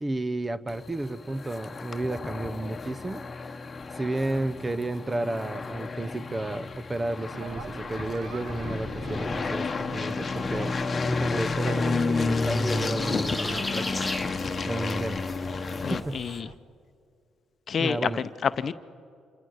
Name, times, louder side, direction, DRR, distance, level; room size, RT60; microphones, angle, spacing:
voice 1, 0.0-3.7 3.9-13.9 14.7-15.4 15.9-16.4 17.8-18.2, right 2 dB, 20° right, 14 dB, 0.7 m, -32 dB
sound 1, 0.7-16.0, left 4 dB, 30° left, 1.1 m, -31 dB
sound 2, 7.3-16.6, right 6 dB, 80° right, 1.0 m, -44 dB
sound 3, 11.2-16.4, left 2 dB, 10° left, 1.3 m, -38 dB
voice 2, 15.8-16.5 17.7-18.7, left 7 dB, 50° left, 12 dB, 0.7 m, -28 dB
26.5 x 22.0 x 6.4 m, 2.4 s
cardioid pair, 90°, 0 cm